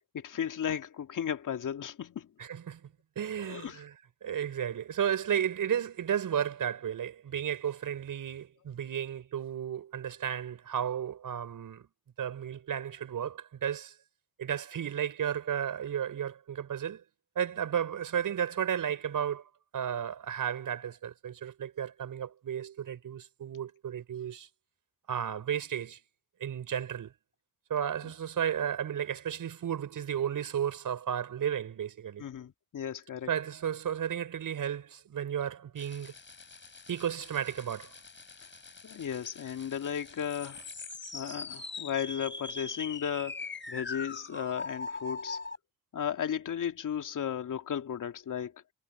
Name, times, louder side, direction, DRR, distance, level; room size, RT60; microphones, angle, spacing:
voice 1, 0.1-2.3 3.5-3.8 32.2-33.3 38.8-40.6 41.1-45.4 45.9-48.5, left 8 dB, 55° left, 2.6 m, -35 dB
voice 2, 2.4-2.9 3.2-3.9 4.2-11.9 12.2-13.9 14.4-17.0 17.4-19.4 19.7-24.5 25.1-26.0 26.4-27.1 27.7-32.2 33.3-36.1 36.9-37.9, right 9 dB, 60° right, 6.1 m, -33 dB
sound 1, 35.8-45.6, left 4 dB, 30° left, 4.6 m, -42 dB
hypercardioid pair, 55°, 37 cm